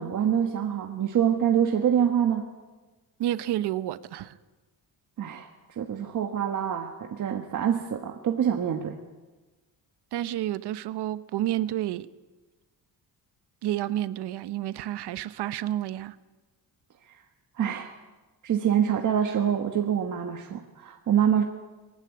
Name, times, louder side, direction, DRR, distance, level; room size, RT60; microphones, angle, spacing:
voice 1, 0.0-2.5 5.2-9.0 17.6-17.9 18.4-21.4, right 9 dB, 50° right, 3 dB, 1.4 m, -25 dB
voice 2, 3.2-4.4 10.1-12.1 13.6-16.2, right 13 dB, 90° right, 14 dB, 1.0 m, -30 dB
21.0 x 15.5 x 9.7 m, 1.2 s
cardioid pair, 160°, 39 cm